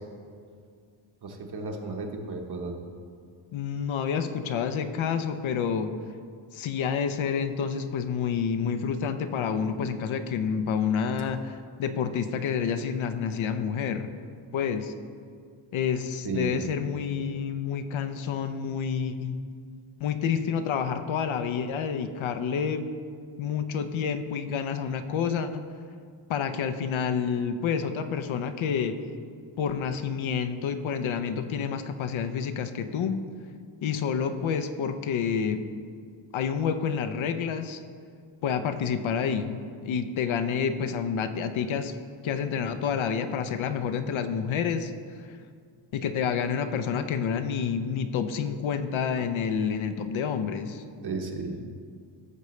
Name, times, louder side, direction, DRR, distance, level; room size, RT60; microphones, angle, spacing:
voice 1, 1.2-2.8 16.2-16.6 49.2-49.3 51.0-51.6, right 3 dB, 50° right, 2 dB, 1.3 m, -33 dB
voice 2, 3.5-5.9 6.5-14.1 14.5-14.9 15.7-19.4 20.0-22.9 23.4-25.7 26.3-29.0 29.6-33.2 33.8-35.6 36.3-37.8 38.4-41.9 42.2-44.9 45.9-50.8, left 7 dB, 75° left, 8 dB, 0.7 m, -29 dB
15.0 x 6.6 x 3.2 m, 2.2 s
cardioid pair, 110°, 49 cm